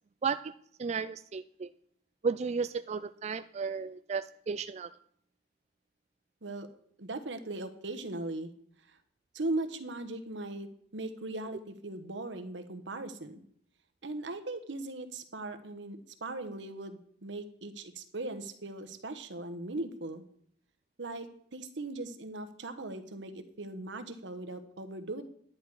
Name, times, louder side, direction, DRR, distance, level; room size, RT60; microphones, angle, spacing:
voice 1, 0.2-1.7 2.2-4.9, right 5 dB, 35° right, 12 dB, 0.3 m, -34 dB
voice 2, 7.0-8.5 8.9-9.0 9.3-13.4 14.0-20.2 21.0-25.2, right 2 dB, 85° right, 8 dB, 1.2 m, -39 dB
10.5 x 10.0 x 4.8 m, 0.65 s
head